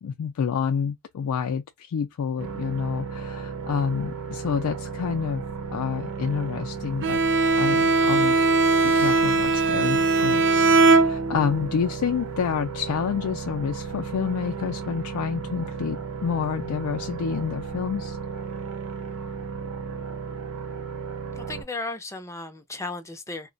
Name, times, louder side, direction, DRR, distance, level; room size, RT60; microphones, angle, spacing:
voice 1, 0.0-5.4 5.7-7.2 7.5-8.5 8.8-18.2, left 7 dB, 85° left, 0.3 m, -28 dB
sound 1, 2.4-21.6, right 5 dB, 90° right, 0.7 m, -35 dB
Bowed string instrument, 7.0-11.6, right 3 dB, 55° right, 0.5 m, -20 dB
voice 2, 21.4-23.5, left 2 dB, 15° left, 0.5 m, -35 dB
2.3 x 2.1 x 3.8 m
head